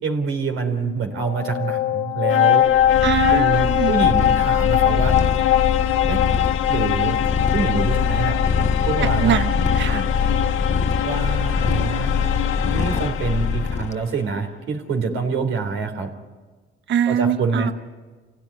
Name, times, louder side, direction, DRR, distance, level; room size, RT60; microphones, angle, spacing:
voice 1, 0.0-2.7 3.3-5.1 6.1-6.2 6.7-7.2 7.5-9.4 11.0-12.2 12.6-16.1 17.1-17.7, right 5 dB, 90° right, 4 dB, 3.7 m, -26 dB
sound 1, 1.1-13.9, left 12 dB, 90° left, 0.9 m, -22 dB
Purr, 2.7-14.0, left 5 dB, 35° left, 1.0 m, -23 dB
voice 2, 3.0-3.9 9.2-10.1 16.9-17.7, right 9 dB, 65° right, 11 dB, 1.1 m, -22 dB
28.5 x 17.0 x 9.8 m, 1.3 s
cardioid pair, 90°, 20 cm